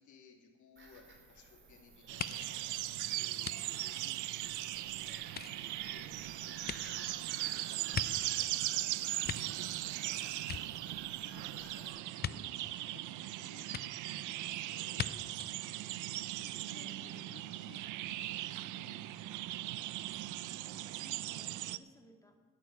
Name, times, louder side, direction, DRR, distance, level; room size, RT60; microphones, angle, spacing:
voice 1, 0.0-6.0 6.4-7.2 7.5-17.8 18.2-19.0 19.3-19.9, left 6 dB, 75° left, 1 dB, 2.5 m, -60 dB
Bird vocalization bird call bird song / Gull seagull, 0.8-11.9, right 3 dB, 40° right, 2.9 m, -56 dB
sound 1, 2.1-21.8, right 15 dB, 80° right, 0.5 m, -39 dB
sound 2, 2.2-4.8 5.2-8.6 9.0-10.1 10.4-11.3 12.2-12.4 13.7-13.8 14.9-15.1 15.4-15.6, left 9 dB, 35° left, 0.4 m, -42 dB
voice 2, 5.7-6.3 20.6-22.4, equal, 10° left, 2 dB, 2.1 m, -62 dB
11.0 x 8.6 x 9.4 m, 1.5 s
cardioid pair, 90°, 30 cm